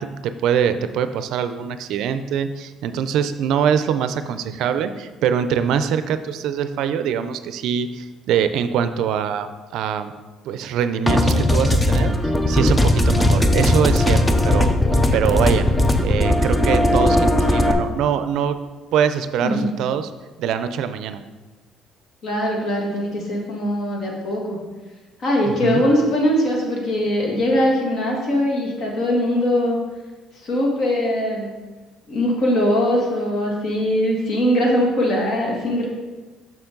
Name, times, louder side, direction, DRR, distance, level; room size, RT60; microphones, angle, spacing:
voice 1, 0.0-10.1 10.4-12.1 12.5-14.7 15.1-15.7 16.0-18.6 18.9-20.1 20.4-21.2 25.4-25.8, right 8 dB, 70° right, 11 dB, 0.4 m, -23 dB
sound 1, 11.1-17.7, left 1 dB, 10° left, 0.5 m, -17 dB
voice 2, 22.2-24.6 25.2-29.8 30.4-31.5 32.1-35.9, equal, 55° left, -1 dB, 1.8 m, -21 dB
6.9 x 6.0 x 3.8 m, 1.2 s
cardioid pair, 150°, 0 cm